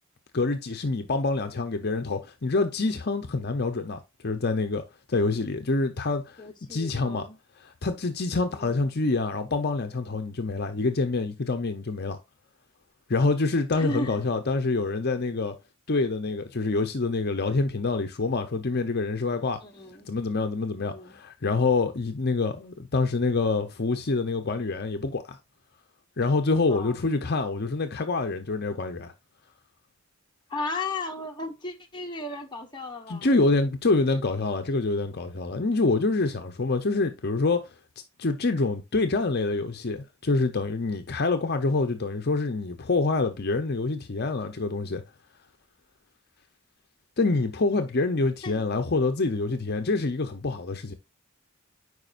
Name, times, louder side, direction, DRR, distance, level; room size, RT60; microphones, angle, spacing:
voice 1, 0.3-4.8 5.1-6.4 6.7-7.3 7.6-12.2 13.1-15.6 15.9-19.6 20.1-25.4 26.2-29.1 33.1-37.7 38.2-45.0 47.2-50.9, left 3 dB, 50° left, 0.7 m, -26 dB
voice 2, 6.4-7.4 8.5-8.9 13.7-14.3 19.6-20.1 20.8-21.2 26.7-27.0 30.5-33.3 48.4-48.6, left 2 dB, 20° left, 1.1 m, -35 dB
9.4 x 5.0 x 2.5 m
head